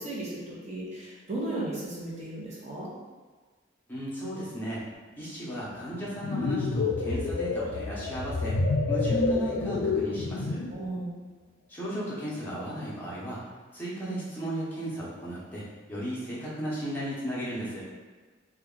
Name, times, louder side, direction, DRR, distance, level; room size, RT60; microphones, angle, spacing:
voice 1, 0.0-2.9 10.7-11.2, right 2 dB, 35° right, -6 dB, 0.7 m, -35 dB
voice 2, 3.9-4.8 5.2-8.6 8.9-10.6 11.7-13.5 13.7-15.6 15.9-17.8, right 1 dB, 10° left, -8 dB, 0.8 m, -35 dB
sound 1, 6.0-10.8, left 3 dB, 75° left, 0.4 m, -28 dB
2.9 x 2.3 x 3.7 m, 1.4 s
head